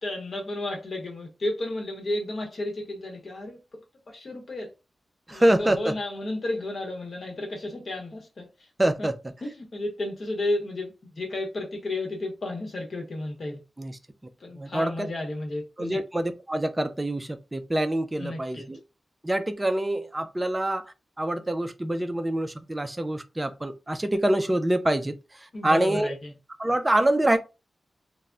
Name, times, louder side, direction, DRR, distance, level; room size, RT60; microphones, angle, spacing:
voice 1, 0.0-3.8 4.1-4.7 5.3-8.7 9.0-9.1 9.4-13.6 14.4-16.0 18.2-18.7 25.5-26.3, left 2 dB, 50° left, 0.9 m, -32 dB
voice 2, 5.3-5.8 8.8-9.1 13.8-13.9 14.6-15.1 15.8-18.8 19.2-20.9 21.2-25.1 25.6-26.1 26.6-27.4, right 1 dB, 15° right, 0.3 m, -25 dB
2.2 x 2.0 x 3.7 m
wide cardioid pair, 140°, 0 cm